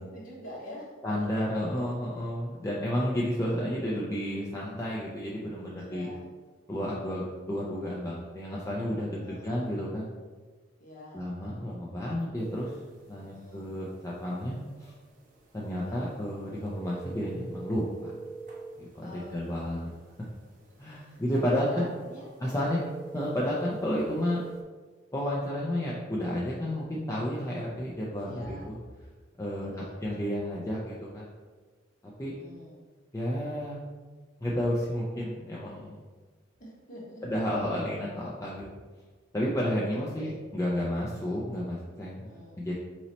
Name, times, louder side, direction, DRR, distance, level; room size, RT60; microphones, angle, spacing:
voice 1, 0.0-0.9 1.1-1.3 5.8-6.2 9.2-9.5 10.8-11.3 13.1-13.7 15.8-16.2 19.0-19.8 20.7-22.8 28.2-28.7 29.6-30.0 32.2-32.8 36.6-37.2 39.9-40.5 42.2-42.6, left 1 dB, 45° left, -5 dB, 1.4 m, -46 dB
voice 2, 1.0-6.1 6.7-10.1 11.1-12.8 13.1-14.9 15.5-18.1 18.8-19.9 20.8-21.9 22.4-22.8 23.1-24.4 25.1-28.8 29.4-29.7 30.0-31.3 32.2-32.3 33.1-33.8 34.4-36.0 37.2-38.7 39.3-42.7, equal, 15° left, -5 dB, 0.5 m, -31 dB
sound 1, 12.4-24.6, right 4 dB, 45° right, 0.7 m, -46 dB
4.0 x 3.1 x 4.1 m, 1.4 s
head